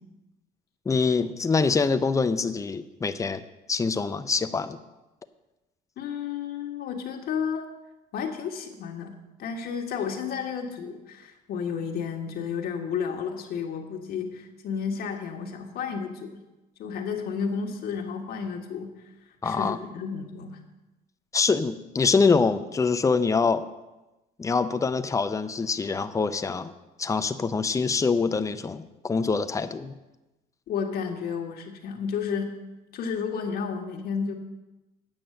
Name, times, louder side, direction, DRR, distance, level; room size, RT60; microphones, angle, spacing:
voice 1, 0.9-3.4 3.7-4.8 19.4-19.8 21.3-23.7 24.4-26.7 27.0-29.9, left 4 dB, 20° left, 10 dB, 0.6 m, -25 dB
voice 2, 6.0-7.7 8.1-9.1 9.4-16.4 16.8-18.9 19.4-20.6 30.7-32.5 32.9-34.3, left 6 dB, 65° left, 3 dB, 1.5 m, -32 dB
8.8 x 6.1 x 7.7 m, 1.0 s
cardioid pair, 110°, 17 cm